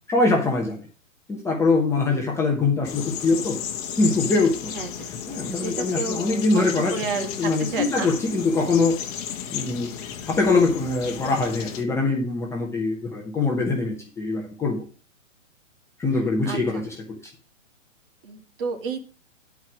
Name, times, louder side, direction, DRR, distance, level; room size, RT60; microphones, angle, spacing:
voice 1, 0.1-0.8 1.3-3.6 4.0-4.7 5.3-6.9 7.4-9.0 9.5-9.9 10.2-14.8 16.0-16.9, left 3 dB, 5° left, -1 dB, 1.0 m, -23 dB
sound 1, 2.8-11.8, left 8 dB, 30° left, 1.2 m, -34 dB
voice 2, 4.7-8.1 16.4-16.8 18.2-19.0, right 4 dB, 45° right, 5 dB, 2.0 m, -32 dB
10.5 x 4.7 x 6.1 m, 0.37 s
hypercardioid pair, 145°, 39 cm